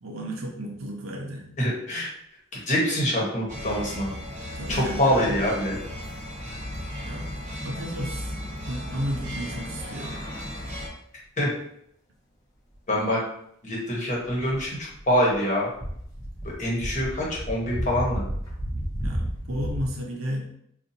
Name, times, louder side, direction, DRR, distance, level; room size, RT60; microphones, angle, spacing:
voice 1, 0.0-1.4 4.5-5.4 7.0-7.3 7.6-8.3 8.6-10.2 19.0-20.5, equal, 85° right, 0 dB, 0.7 m, -33 dB
voice 2, 1.6-2.1 2.7-4.1 4.7-5.8 11.4-11.5 12.9-13.2 13.6-15.7 16.4-18.2, equal, 35° left, -4 dB, 1.1 m, -25 dB
sound 1, 3.5-10.9, equal, 35° right, 0.9 m, -35 dB
sound 2, 14.2-15.4 15.7-19.9, equal, 15° left, 0.7 m, -32 dB
4.0 x 2.5 x 2.7 m, 0.70 s
head